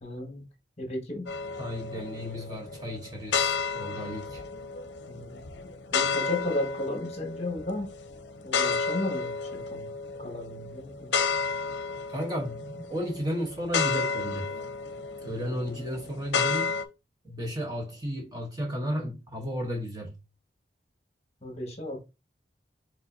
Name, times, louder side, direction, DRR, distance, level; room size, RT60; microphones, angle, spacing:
voice 1, 0.0-0.4 0.8-1.3 5.1-5.4 5.9-7.9 8.4-9.9 10.2-11.1 21.4-22.0, left 1 dB, 35° left, 1.4 m, -34 dB
sound 1, 1.3-16.8, left 5 dB, 70° left, 0.6 m, -32 dB
voice 2, 1.6-4.4 12.1-14.5 15.2-16.7 17.2-20.2, equal, 20° right, 1.0 m, -33 dB
5.4 x 3.6 x 2.6 m
head